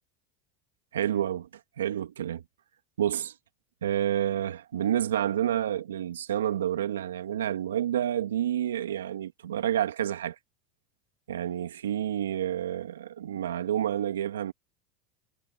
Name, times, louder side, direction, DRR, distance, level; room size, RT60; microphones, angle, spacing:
voice 1, 0.9-1.5 1.8-2.4 3.0-3.3 3.8-10.4 11.3-14.5, right 10 dB, 90° right, 2.4 m, -29 dB
hypercardioid pair, 90°, 0 cm